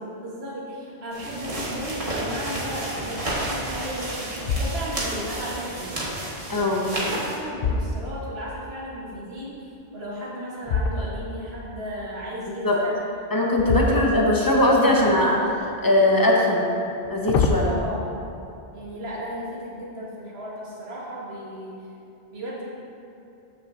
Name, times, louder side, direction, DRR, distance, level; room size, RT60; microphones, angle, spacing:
voice 1, 0.0-6.0 6.7-13.0 13.7-14.0 17.7-18.1 18.7-21.9 22.3-22.6, equal, 75° right, -6 dB, 1.7 m, -35 dB
sound 1, 1.1-7.4, right 1 dB, 35° right, 1.6 m, -31 dB
sound 2, 1.5-2.0 2.5-2.6 3.2-3.8 4.3-5.2 6.9-8.6 10.6-11.4 13.5-14.6 15.1-15.8 16.8-17.7, left 3 dB, 65° left, 0.7 m, -27 dB
voice 2, 6.5-6.9 12.6-12.8 13.3-16.7 17.1-17.7, left 1 dB, 20° left, -3 dB, 1.1 m, -20 dB
14.0 x 6.5 x 2.7 m, 2.7 s
omnidirectional pair, 1.1 m